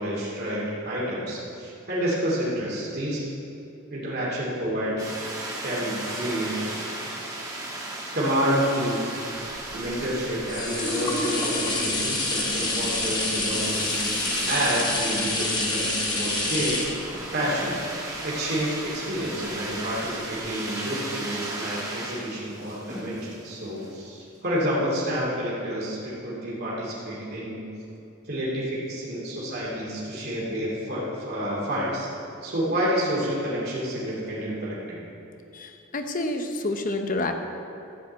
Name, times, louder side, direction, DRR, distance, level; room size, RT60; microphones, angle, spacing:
voice 1, 0.0-3.2 3.9-5.0 5.6-6.6 8.1-9.0 9.7-14.0 14.5-16.8 17.3-27.6 28.2-32.1 32.4-35.0, equal, 50° right, -6 dB, 2.7 m, -29 dB
sound 1, 5.0-23.9, right 2 dB, 15° right, 1.6 m, -37 dB
sound 2, 9.5-19.2 19.7-19.8, left 2 dB, 20° left, 1.3 m, -28 dB
voice 2, 35.5-37.3, left 2 dB, 40° left, 6 dB, 0.8 m, -28 dB
13.0 x 5.4 x 7.8 m, 2.8 s
head